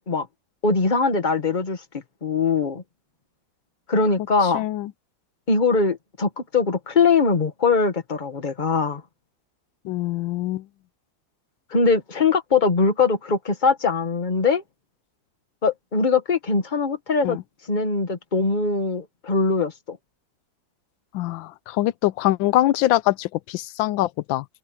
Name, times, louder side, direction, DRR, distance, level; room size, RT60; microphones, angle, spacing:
voice 1, 0.6-1.8 2.2-2.8 3.9-4.6 5.5-9.0 11.7-14.6 15.6-17.4 17.7-20.0, left 4 dB, 25° left, 1.7 m, -21 dB
voice 2, 4.5-4.9 9.8-10.6 17.2-17.4 21.1-24.4, left 15 dB, 90° left, 1.3 m, -23 dB
open air
omnidirectional pair, 2.0 m